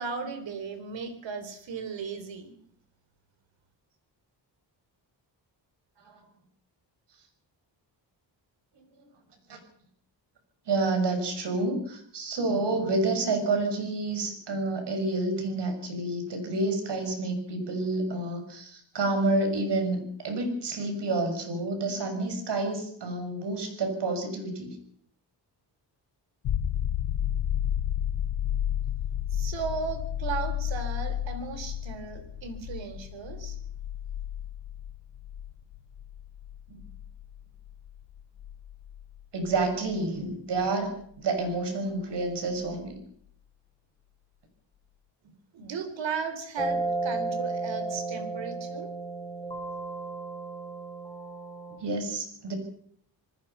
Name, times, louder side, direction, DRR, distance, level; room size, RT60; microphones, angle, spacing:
voice 1, 0.0-2.5 29.3-33.6 45.5-48.9, right 5 dB, 85° right, 9 dB, 4.0 m, -36 dB
voice 2, 10.7-24.7 36.7-36.8 39.3-43.0 51.8-52.5, right 2 dB, 70° right, 6 dB, 6.4 m, -29 dB
sound 1, 26.4-40.0 42.7-42.8, left 10 dB, 80° left, 1.2 m, -32 dB
sound 2, 46.6-51.8, right 3 dB, 10° left, 4.1 m, -33 dB
27.5 x 19.5 x 5.7 m, 0.64 s
wide cardioid pair, 155°, 44 cm